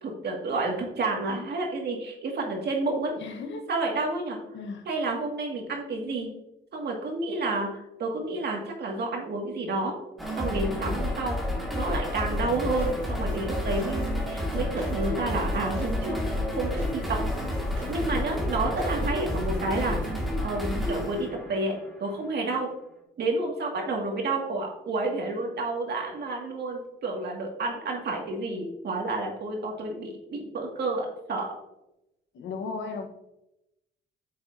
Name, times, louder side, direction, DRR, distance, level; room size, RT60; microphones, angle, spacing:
voice 1, 0.0-3.1 3.7-4.4 4.9-6.3 6.7-10.0 10.3-11.4 11.7-17.2 17.9-20.1 20.4-21.7 22.0-22.7 23.2-31.5, right 2 dB, 55° right, 1 dB, 2.2 m, -30 dB
voice 2, 3.2-3.7 4.5-4.9 32.3-33.1, left 4 dB, 70° left, 5 dB, 1.2 m, -35 dB
sound 1, 10.2-22.2, left 1 dB, ahead, 2.1 m, -30 dB
sound 2, 12.3-20.3, right 1 dB, 85° right, 2.9 m, -40 dB
8.7 x 6.6 x 2.7 m, 0.88 s
cardioid pair, 90°, 20 cm